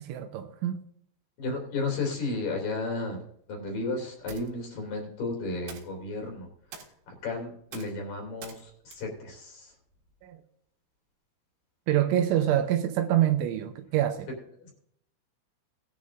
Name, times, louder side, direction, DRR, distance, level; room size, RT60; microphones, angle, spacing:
voice 1, 0.0-0.8 10.2-10.4 11.9-14.3, right 11 dB, 80° right, 2.9 m, -26 dB
voice 2, 1.4-3.2 3.5-6.5 7.1-9.7 14.6-14.7, left 3 dB, 50° left, 3.9 m, -33 dB
sound 1, 4.2-10.3, right 5 dB, 65° right, 3.9 m, -51 dB
19.0 x 11.0 x 2.5 m
omnidirectional pair, 5.8 m